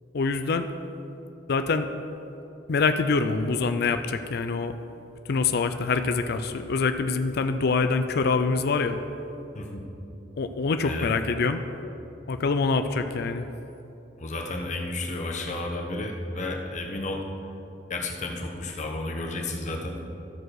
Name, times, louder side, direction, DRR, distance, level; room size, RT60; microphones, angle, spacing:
voice 1, 0.1-0.7 1.5-1.9 2.7-4.7 5.3-9.0 10.4-11.6 12.3-13.5, left 4 dB, 60° left, 9 dB, 0.4 m, -25 dB
voice 2, 14.2-17.2 17.9-20.0, left 2 dB, 40° left, 1 dB, 1.1 m, -32 dB
13.5 x 4.7 x 6.3 m, 2.9 s
head